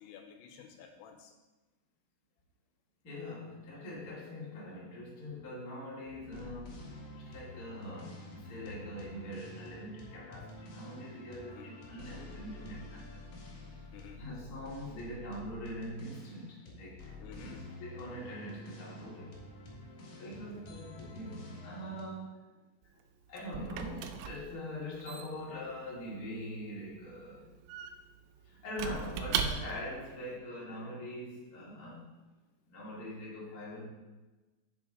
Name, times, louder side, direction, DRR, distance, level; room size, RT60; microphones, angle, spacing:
voice 1, 0.0-1.3 7.3-7.4 7.7-7.8 11.5-11.7 13.9-14.2 17.2-17.7 20.2-20.3 20.8-20.9, left 7 dB, 80° left, 5 dB, 3.0 m, -52 dB
voice 2, 3.0-6.8 7.2-13.2 13.8-13.9 14.2-19.4 20.2-22.4 22.8-22.9 23.3-27.5 28.4-32.1 32.7-33.8, equal, 30° left, -6 dB, 1.9 m, -43 dB
sound 1, 6.1-22.0, left 2 dB, 55° left, 2.7 m, -49 dB
Squeak / Wood, 22.8-30.0, right 7 dB, 85° right, 3.0 m, -40 dB
9.5 x 7.1 x 3.6 m, 1.2 s
omnidirectional pair, 5.3 m